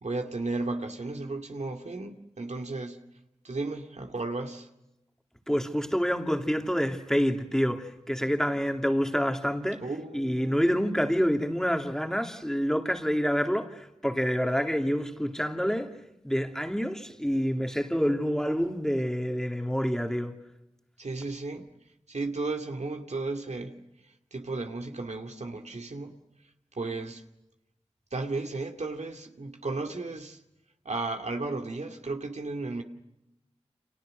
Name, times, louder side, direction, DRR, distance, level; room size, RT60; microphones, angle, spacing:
voice 1, 0.0-3.0 3.4-4.7 9.8-10.6 21.0-21.7 22.1-23.8 24.3-26.1 26.8-27.2 28.1-30.4 30.8-32.8, right 3 dB, 80° right, 2.3 m, -34 dB
voice 2, 5.5-9.8 10.1-15.9 16.2-20.3, equal, 5° left, 2.6 m, -27 dB
30.0 x 27.5 x 6.5 m
wide cardioid pair, 50°, 12 cm